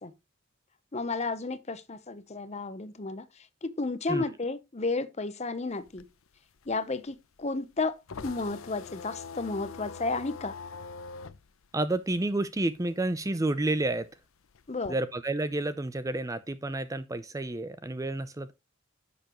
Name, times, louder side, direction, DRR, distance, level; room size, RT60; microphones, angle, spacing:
voice 1, 0.9-6.0 6.7-8.0 8.2-10.5 14.7-15.0, left 3 dB, 35° left, 0.8 m, -32 dB
sound 1, 5.7-12.8 13.1-14.9, left 5 dB, 90° left, 0.6 m, -44 dB
voice 2, 11.7-14.1 14.9-18.5, right 2 dB, 15° right, 0.5 m, -30 dB
10.5 x 6.8 x 3.0 m
head